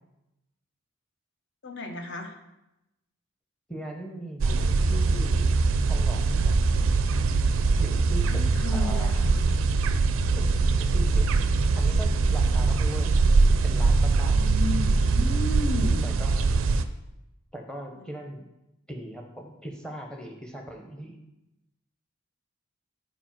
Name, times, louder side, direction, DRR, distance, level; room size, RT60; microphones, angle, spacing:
voice 1, 1.6-2.3 8.2-9.3 14.1-16.0 17.9-18.2, left 2 dB, 55° left, 5 dB, 0.8 m, -34 dB
voice 2, 3.7-5.5 5.9-6.6 7.8-8.4 8.7-9.3 10.4-10.5 10.8-11.3 11.8-13.2 13.6-14.4 16.0-16.5 17.5-18.5 18.9-21.2, right 1 dB, 5° left, 2 dB, 0.8 m, -39 dB
sound 1, 4.4-16.9, right 3 dB, 65° right, 0.4 m, -22 dB
5.0 x 4.6 x 5.8 m, 0.93 s
head